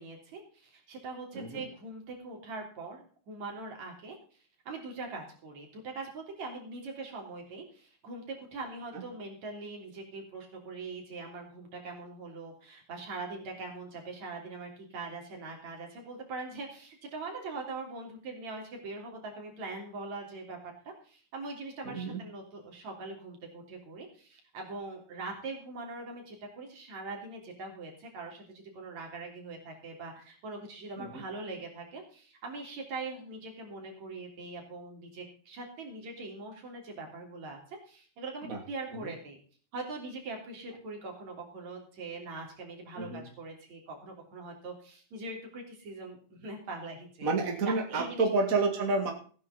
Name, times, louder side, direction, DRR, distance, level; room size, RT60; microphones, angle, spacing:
voice 1, 0.0-4.2 4.7-39.4 39.7-47.3 47.6-48.3, right 3 dB, 60° right, 1 dB, 4.4 m, -42 dB
voice 2, 1.3-1.7 8.9-9.0 21.8-22.2 31.0-31.2 38.4-38.6 39.0-39.1 43.0-43.2 47.2-49.1, right 3 dB, 30° right, 2 dB, 2.0 m, -30 dB
16.0 x 9.6 x 4.2 m, 0.43 s
omnidirectional pair, 3.8 m